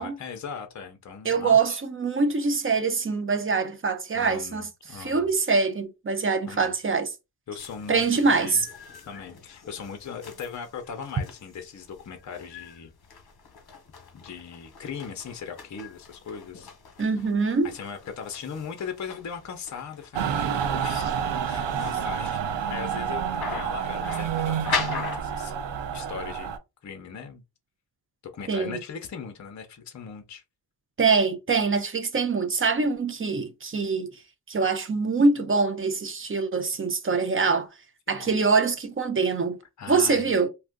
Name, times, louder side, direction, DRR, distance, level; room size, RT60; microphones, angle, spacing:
voice 1, 0.0-1.8 4.1-5.3 6.5-6.8 7.5-8.6 9.0-12.9 14.1-16.7 17.6-25.6 25.9-26.5 26.8-27.4 28.3-30.4 38.1-38.3 39.8-40.4, left 6 dB, 45° left, 0.6 m, -39 dB
voice 2, 1.2-7.1 7.9-8.7 17.0-17.7 28.5-28.8 31.0-34.1 34.5-37.7 38.1-39.6 39.9-40.5, right 4 dB, 30° right, 0.5 m, -24 dB
sound 1, 7.6-25.2, left 5 dB, 60° left, 1.0 m, -40 dB
Mechanical fan, 20.1-26.6, right 8 dB, 85° right, 0.6 m, -29 dB
2.7 x 2.4 x 3.5 m
wide cardioid pair, 145°, 42 cm